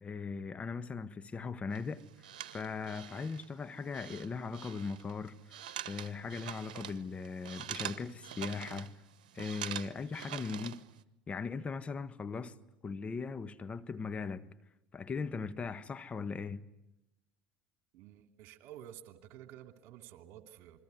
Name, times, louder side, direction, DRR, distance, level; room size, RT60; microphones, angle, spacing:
voice 1, 0.0-2.0 2.5-5.3 5.9-8.9 9.3-10.8 11.3-12.6 12.8-14.4 14.9-16.6, left 5 dB, 25° left, 1.3 m, -39 dB
sound 1, 1.7-11.0, right 11 dB, 80° right, 1.1 m, -45 dB
voice 2, 17.9-20.8, right 11 dB, 60° right, 2.7 m, -51 dB
28.0 x 22.0 x 9.5 m
hypercardioid pair, 75°, 4 cm